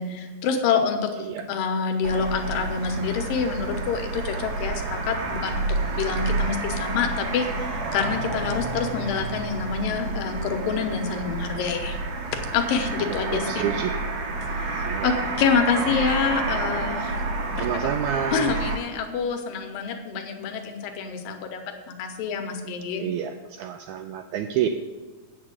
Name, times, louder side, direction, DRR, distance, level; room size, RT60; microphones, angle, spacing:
voice 1, 0.0-12.0 12.3-13.6 14.4-17.2 17.6-17.7 18.3-21.6 21.9-23.1, left 6 dB, 85° left, 5 dB, 2.7 m, -27 dB
sound 1, 2.0-18.8, right 3 dB, 70° right, 3.2 m, -29 dB
voice 2, 13.3-14.0 14.8-15.1 17.6-18.5 23.0-24.8, right 9 dB, 85° right, 6 dB, 1.7 m, -28 dB
8.6 x 6.8 x 7.3 m, 1.3 s
omnidirectional pair, 4.0 m